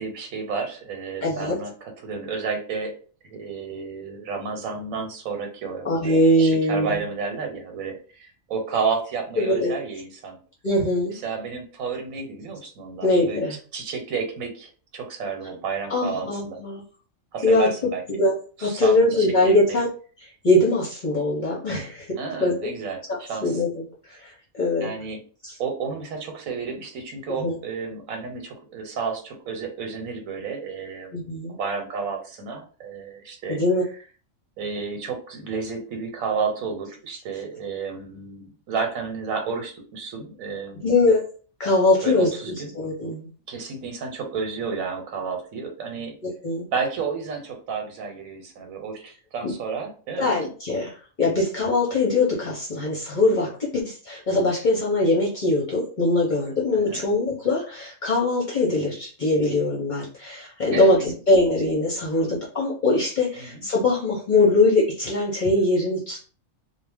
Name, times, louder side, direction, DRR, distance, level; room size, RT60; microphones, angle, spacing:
voice 1, 0.0-2.9 3.2-10.4 11.2-13.4 13.7-16.6 17.3-18.0 18.6-19.8 22.2-23.6 24.8-25.2 25.6-31.2 31.5-33.6 34.6-40.9 42.0-42.7 43.5-46.2 46.7-50.3 56.7-57.0 60.7-61.2 63.4-63.7, right 5 dB, 80° right, 3 dB, 1.2 m, -31 dB
voice 2, 1.2-1.5 5.8-7.0 9.4-9.7 10.6-11.2 13.0-13.6 15.9-16.8 17.4-17.7 18.1-18.3 18.6-19.9 20.2-22.7 23.1-23.8 24.1-24.9 25.4-25.5 27.4-27.6 31.1-31.6 33.5-33.8 40.8-41.2 41.6-42.3 42.7-43.3 46.2-46.7 49.4-49.5 50.2-66.2, left 2 dB, 50° left, -2 dB, 0.6 m, -22 dB
2.3 x 2.1 x 3.3 m, 0.39 s
omnidirectional pair, 1.4 m